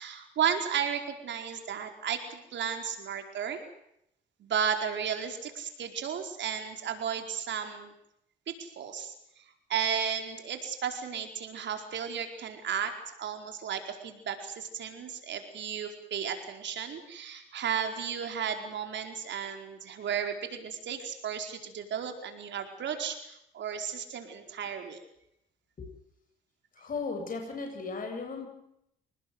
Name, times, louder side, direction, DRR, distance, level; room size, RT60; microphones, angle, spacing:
voice 1, 0.0-3.6 4.4-7.9 8.5-9.4 9.7-12.9 13.2-25.0, right 8 dB, 65° right, 5 dB, 4.7 m, -34 dB
voice 2, 26.7-28.5, left 4 dB, 45° left, 3 dB, 7.7 m, -36 dB
27.5 x 19.0 x 8.0 m, 0.78 s
cardioid pair, 90°, 20 cm